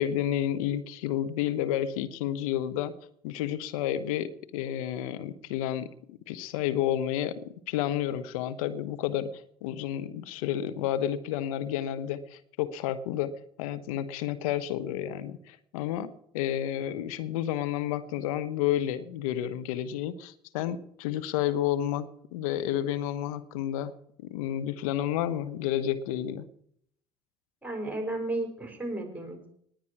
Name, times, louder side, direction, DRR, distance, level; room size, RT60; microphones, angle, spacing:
voice 1, 0.0-2.9 3.2-23.9 24.2-26.5, left 11 dB, 75° left, 12 dB, 1.0 m, -31 dB
voice 2, 27.6-29.5, right 2 dB, 10° right, 3 dB, 5.2 m, -33 dB
19.5 x 8.8 x 4.7 m, 0.68 s
hypercardioid pair, 55°, 18 cm